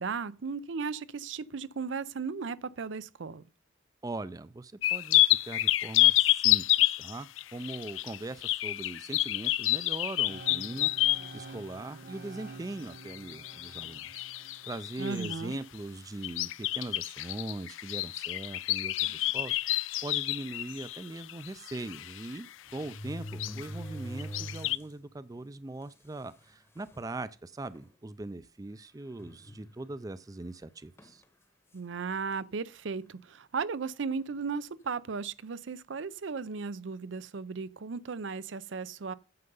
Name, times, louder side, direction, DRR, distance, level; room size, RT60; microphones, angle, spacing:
voice 1, 0.0-3.4 15.0-15.6 31.7-39.1, right 5 dB, 80° right, 0.5 m, -36 dB
voice 2, 4.0-10.9 11.3-22.5 22.7-31.2, right 2 dB, 20° right, 0.4 m, -41 dB
sound 1, 4.8-11.4 13.0-15.5 16.2-22.4 22.7-23.0 23.3-23.7 24.2-24.8, left 16 dB, 90° left, 0.4 m, -29 dB
sound 2, 10.3-16.2, right 3 dB, 55° right, 1.2 m, -49 dB
sound 3, 19.1-19.3 20.1-20.2 20.5-20.6 21.9-22.0 22.7-24.9 25.4-25.5 26.3-26.4 26.8-27.1 27.7-27.9 29.2-30.0 31.0-31.2, equal, 15° left, 0.9 m, -43 dB
9.6 x 6.6 x 5.4 m
head